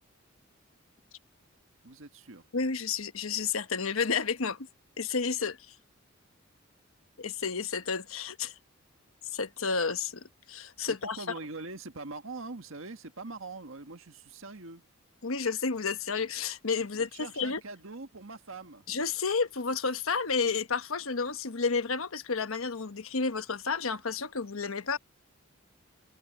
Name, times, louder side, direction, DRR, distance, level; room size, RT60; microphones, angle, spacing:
voice 1, 1.8-2.5 10.8-14.8 16.8-18.9, right 3 dB, 75° right, 1.6 m, -43 dB
voice 2, 2.5-4.7 5.0-5.8 7.2-8.6 9.2-11.2 15.2-17.6 18.9-25.0, left 5 dB, 85° left, 1.2 m, -31 dB
head